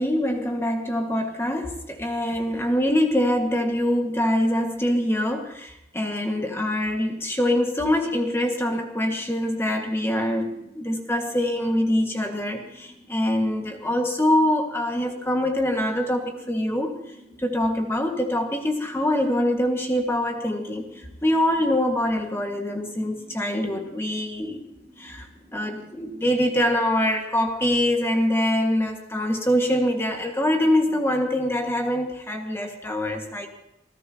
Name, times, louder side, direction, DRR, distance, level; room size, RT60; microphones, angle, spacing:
voice 1, 0.0-17.0 17.4-24.6 25.0-25.3 25.5-33.5, left 1 dB, 15° left, 2 dB, 1.7 m, -24 dB
sound 1, 7.7-27.1, equal, 35° left, 6.6 m, -51 dB
28.5 x 16.0 x 2.9 m, 0.82 s
head